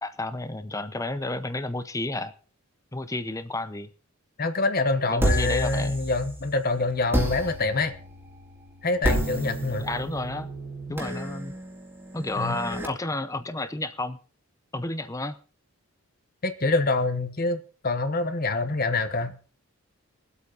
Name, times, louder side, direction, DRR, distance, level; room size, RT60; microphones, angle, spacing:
voice 1, 0.0-2.3 2.9-3.9 5.1-6.0 9.8-10.5 10.9-11.5 12.1-14.2 14.7-15.3, left 2 dB, 15° left, 12 dB, 0.7 m, -31 dB
voice 2, 4.4-7.9 8.8-9.9 12.4-12.6 16.4-19.4, left 3 dB, 40° left, 9 dB, 1.1 m, -26 dB
sound 1, 5.2-6.6 7.1-12.9, right 1 dB, 10° right, 2.2 m, -30 dB
22.0 x 8.3 x 4.0 m, 0.37 s
head